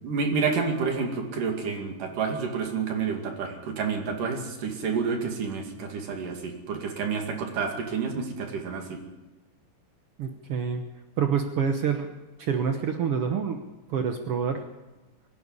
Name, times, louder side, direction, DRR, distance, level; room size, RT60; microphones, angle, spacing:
voice 1, 0.0-9.0, right 5 dB, 60° right, 3 dB, 3.8 m, -29 dB
voice 2, 10.2-10.8 11.2-12.1 12.4-13.6 13.9-14.7, right 7 dB, 90° right, 5 dB, 1.2 m, -27 dB
23.5 x 11.5 x 9.7 m, 1.1 s
omnidirectional pair, 4.2 m